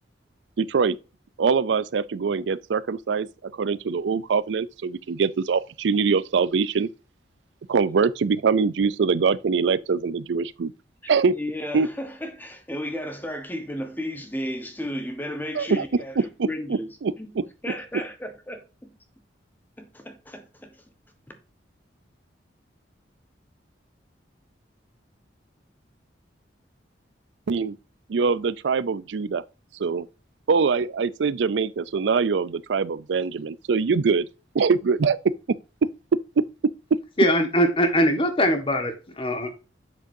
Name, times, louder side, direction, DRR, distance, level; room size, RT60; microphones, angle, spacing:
voice 1, 0.6-1.0 1.4-6.9 7.7-10.7 11.1-11.3 11.7-11.9 15.6-15.8 16.4-17.1 27.5-27.8 28.1-29.4 29.8-30.1 30.5-34.3 34.5-35.2, right 5 dB, 75° right, 0.4 m, -23 dB
voice 2, 11.0-16.9 17.2-19.0 19.8-20.8 21.3-21.4, left 1 dB, 10° left, 1.2 m, -34 dB
voice 3, 37.2-39.5, equal, 30° left, 1.4 m, -22 dB
7.7 x 6.4 x 2.7 m
head